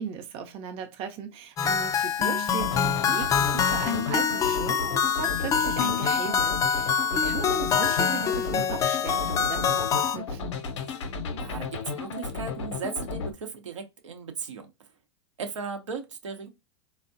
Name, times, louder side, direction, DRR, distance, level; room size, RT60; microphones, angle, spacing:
voice 1, 0.0-10.6, right 7 dB, 40° right, 0.5 m, -37 dB
sound 1, 1.6-10.2, left 7 dB, 20° left, 0.3 m, -25 dB
sound 2, 2.6-13.3, left 4 dB, 70° left, 0.6 m, -34 dB
voice 2, 11.4-14.7 15.4-16.5, right 5 dB, 85° right, 0.7 m, -37 dB
3.5 x 2.0 x 2.5 m
hypercardioid pair, 100°, 15 cm